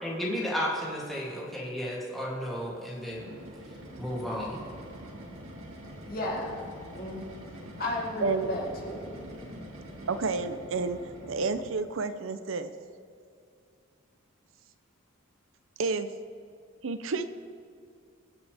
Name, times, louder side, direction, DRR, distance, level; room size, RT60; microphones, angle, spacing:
voice 1, 0.0-3.3 4.0-4.6 9.4-9.5, equal, ahead, -7 dB, 2.8 m, -33 dB
sound 1, 3.1-11.8, equal, 85° right, 2.2 m, -45 dB
voice 2, 6.1-6.5 6.9-7.2 7.8-9.2, left 1 dB, 45° left, -3 dB, 2.7 m, -33 dB
voice 3, 10.1-11.0 11.3-12.7 15.8-16.1 16.8-17.3, right 4 dB, 70° right, 11 dB, 0.6 m, -30 dB
23.0 x 8.0 x 3.5 m, 2.4 s
head